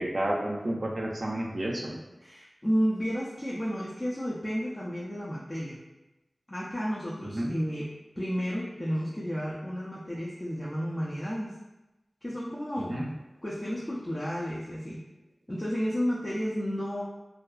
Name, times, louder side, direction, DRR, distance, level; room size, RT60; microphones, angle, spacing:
voice 1, 0.0-2.0 7.3-7.5 12.8-13.1, right 1 dB, 60° right, -1 dB, 0.3 m, -31 dB
voice 2, 2.2-5.8 6.5-7.9 8.2-11.5 12.2-13.0 13.4-15.0 15.5-17.0, equal, 25° left, -6 dB, 0.4 m, -32 dB
2.6 x 2.3 x 2.3 m, 1.0 s
wide cardioid pair, 45°, 0 cm